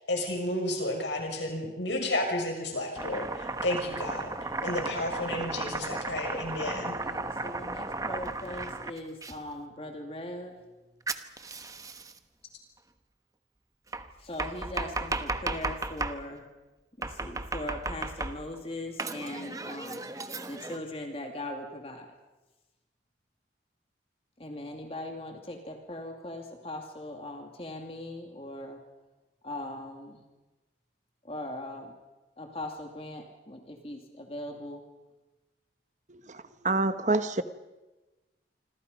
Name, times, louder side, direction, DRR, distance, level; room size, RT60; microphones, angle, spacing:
voice 1, 0.1-4.3 4.6-7.0, left 1 dB, 80° left, 6.7 m, -32 dB
Domestic sounds home sounds, 3.0-9.3 11.1-12.2 13.9-16.2 17.0-18.6 19.0-20.8, right 2 dB, 20° right, 1.0 m, -35 dB
voice 2, 6.6-10.6 14.2-16.5 17.0-20.1 20.5-22.1 24.4-28.8 29.4-30.2 31.2-31.9 32.4-34.8, left 1 dB, 30° left, 2.5 m, -40 dB
voice 3, 36.1-37.4, right 3 dB, 40° right, 1.2 m, -28 dB
26.5 x 26.5 x 5.4 m
head